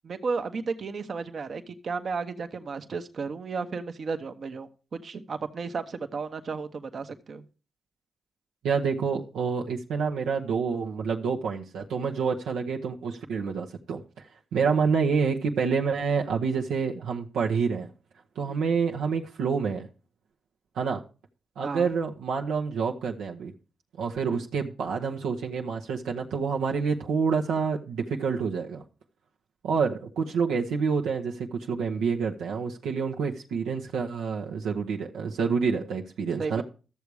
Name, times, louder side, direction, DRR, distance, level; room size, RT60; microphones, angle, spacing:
voice 1, 0.0-7.4 18.5-18.6 21.6-21.9 24.3-24.4 36.4-36.6, right 4 dB, 60° right, 1.0 m, -33 dB
voice 2, 8.6-14.3 14.5-17.9 18.4-19.9 20.7-21.0 21.6-23.5 24.0-28.8 29.6-36.6, right 5 dB, 85° right, 0.9 m, -28 dB
13.0 x 7.0 x 4.8 m
supercardioid pair, 40°, 0 cm